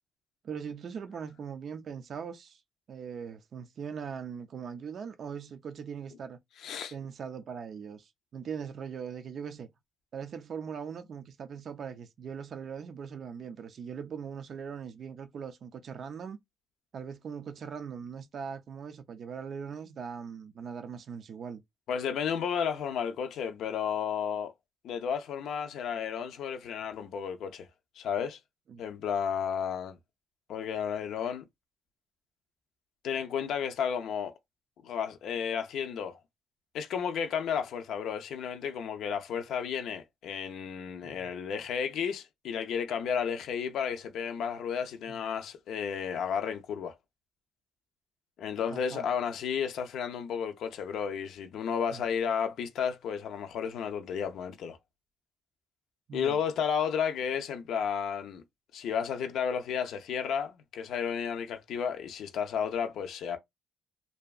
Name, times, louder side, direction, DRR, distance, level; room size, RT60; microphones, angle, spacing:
voice 1, 0.4-2.6 2.9-6.4 6.9-9.7 10.1-16.4 16.9-21.6 28.7-28.8 41.0-41.3 48.7-49.1 51.9-52.0 56.1-56.4, right 6 dB, 50° right, 0.3 m, -40 dB
voice 2, 6.6-6.9 21.9-24.5 24.8-27.7 28.0-28.4 28.8-30.0 30.5-31.4 33.0-34.3 34.8-36.2 36.7-47.0 48.4-54.8 56.1-58.4 58.7-63.4, left 7 dB, 75° left, 0.4 m, -32 dB
2.6 x 2.2 x 2.3 m
cardioid pair, 130°, 0 cm